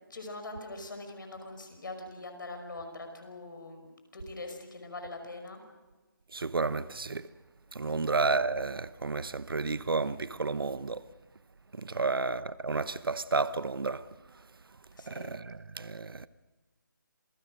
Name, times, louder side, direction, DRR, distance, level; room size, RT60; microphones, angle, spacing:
voice 1, 0.1-5.6 7.8-8.1 11.9-12.2 14.9-15.4, left 2 dB, 65° left, 5.6 m, -43 dB
voice 2, 6.3-7.3 7.7-11.0 11.7-14.0 15.1-16.3, right 3 dB, 90° right, 0.8 m, -31 dB
27.5 x 19.5 x 6.4 m
figure-of-eight pair, 165°, 12 cm